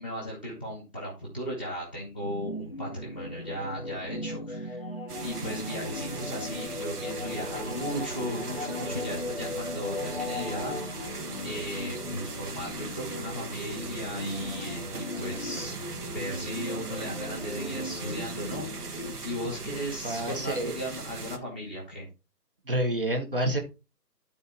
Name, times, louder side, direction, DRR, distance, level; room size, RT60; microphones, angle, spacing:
voice 1, 0.0-4.8 5.2-10.8 11.4-15.7 16.1-19.0 19.2-22.1, equal, 5° right, -7 dB, 1.1 m, -36 dB
sound 1, 2.2-19.1, left 1 dB, 35° left, 0.6 m, -38 dB
sound 2, 5.1-21.4, right 4 dB, 65° right, 1.5 m, -39 dB
voice 2, 20.0-20.8 22.7-23.6, right 1 dB, 35° right, 4 dB, 1.3 m, -28 dB
12.0 x 4.2 x 4.1 m, 0.29 s
figure-of-eight pair, 170°, 50 cm